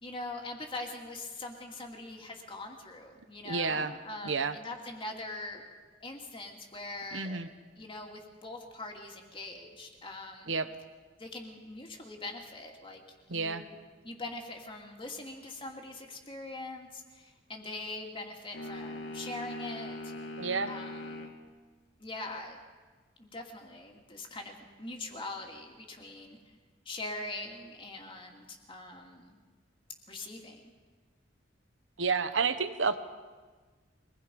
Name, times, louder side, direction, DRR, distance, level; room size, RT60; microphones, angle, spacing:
voice 1, 0.0-5.6 6.0-7.4 7.8-10.5 11.2-13.0 13.3-13.7 14.0-20.1 20.7-21.3 22.0-22.6 23.2-26.4 26.9-29.4 30.1-30.7, left 2 dB, 30° left, 2 dB, 2.5 m, -42 dB
voice 2, 3.4-3.9 4.2-4.6 7.1-7.5 10.5-10.7 13.3-13.6 20.4-20.7 32.0-33.0, right 4 dB, 80° right, 11 dB, 1.2 m, -30 dB
sound 1, 18.5-21.4, left 1 dB, 80° left, 2.6 m, -41 dB
24.0 x 20.0 x 5.3 m, 1.4 s
head